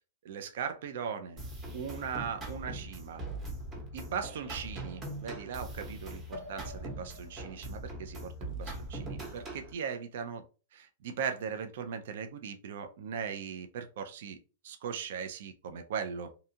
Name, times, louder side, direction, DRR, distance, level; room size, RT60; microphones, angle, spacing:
voice 1, 0.2-1.4 1.7-3.2 3.9-10.4 10.7-14.4 14.6-16.3, right 7 dB, 65° right, 6 dB, 0.4 m, -39 dB
sound 1, 1.4-9.7, right 1 dB, 20° right, 0.8 m, -41 dB
2.6 x 2.3 x 2.7 m, 0.35 s
hypercardioid pair, 150°, 0 cm